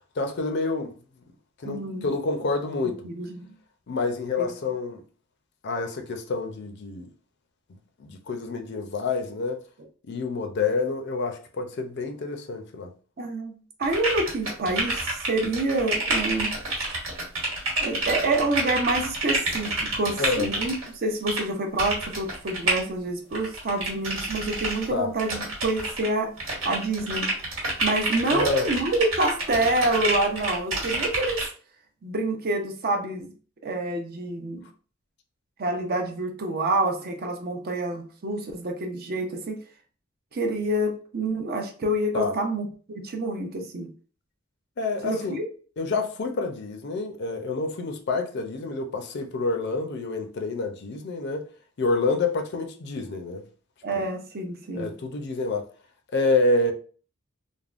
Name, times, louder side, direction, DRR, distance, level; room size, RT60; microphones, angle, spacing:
voice 1, 0.2-0.9 1.6-3.1 3.9-5.0 5.6-7.1 8.0-9.6 10.1-12.9 20.2-20.5 24.9-25.1 28.3-28.7 42.1-42.3 44.8-45.4 45.8-51.5 51.8-53.4 54.0-54.1 54.8-55.7 56.1-56.7, left 3 dB, 55° left, 0.5 m, -28 dB
voice 2, 1.6-2.1 3.0-3.5 4.4-4.5 13.2-16.9 17.8-26.3 26.6-27.3 27.8-31.4 32.0-33.3 33.6-34.7 35.6-39.6 40.3-43.9 45.0-45.5 53.8-54.9, right 2 dB, 50° right, 0.6 m, -27 dB
sound 1, 13.8-20.9 21.3-21.4 21.8-22.8 23.3-24.9 25.2-26.1 26.4-31.5, right 2 dB, 85° right, 1.4 m, -28 dB
3.4 x 2.1 x 2.4 m
head